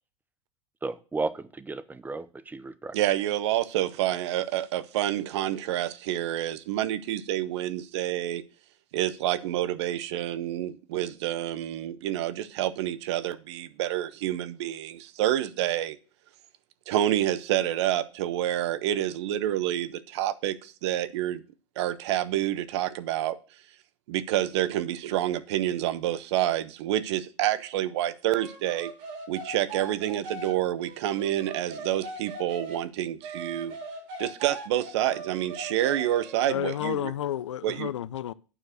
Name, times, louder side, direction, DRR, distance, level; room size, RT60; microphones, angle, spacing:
voice 1, 0.8-3.0, right 3 dB, 10° right, 0.6 m, -34 dB
voice 2, 2.9-8.4 8.9-16.0 16.9-21.4 21.8-23.4 24.1-28.9 29.3-33.8 34.2-37.1 37.6-37.9, right 13 dB, 70° right, 0.7 m, -28 dB
sound 1, 28.3-32.8 33.2-36.4, right 3 dB, 50° right, 2.4 m, -40 dB
voice 3, 36.5-38.3, left 12 dB, 85° left, 0.4 m, -31 dB
8.9 x 4.7 x 6.4 m
hypercardioid pair, 95°, 15 cm